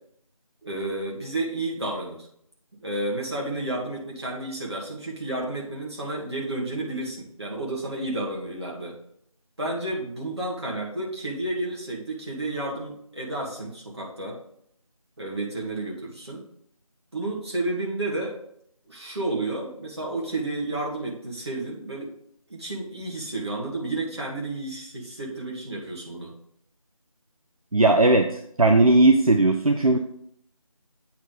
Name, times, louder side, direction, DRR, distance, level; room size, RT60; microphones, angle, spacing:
voice 1, 0.6-2.3 2.8-9.0 9.6-14.4 15.2-16.4 17.1-18.4 18.9-22.1 22.5-26.3, right 2 dB, 45° right, -3 dB, 2.3 m, -31 dB
voice 2, 27.7-28.3 28.6-30.0, right 2 dB, 75° right, 5 dB, 0.7 m, -17 dB
8.3 x 3.4 x 5.5 m, 0.68 s
figure-of-eight pair, 170°, 18 cm